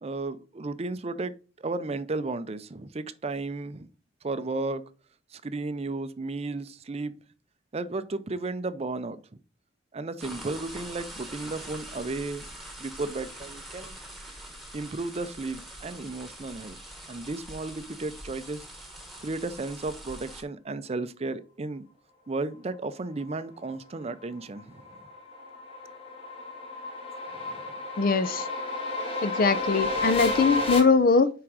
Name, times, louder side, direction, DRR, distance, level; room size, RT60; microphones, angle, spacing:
voice 1, 0.0-1.3 1.6-3.9 4.2-4.8 5.3-7.1 7.7-9.2 9.9-12.5 12.8-14.0 14.7-16.8 17.1-18.6 19.2-21.8 22.3-24.8 27.5-27.6, right 3 dB, 35° right, 0.5 m, -34 dB
sound 1, 10.2-20.4, right 1 dB, ahead, 1.5 m, -44 dB
sound 2, 24.2-30.8, left 2 dB, 30° left, 1.7 m, -32 dB
voice 2, 28.0-28.5 29.2-31.3, left 4 dB, 50° left, 0.5 m, -22 dB
6.0 x 4.9 x 4.8 m
head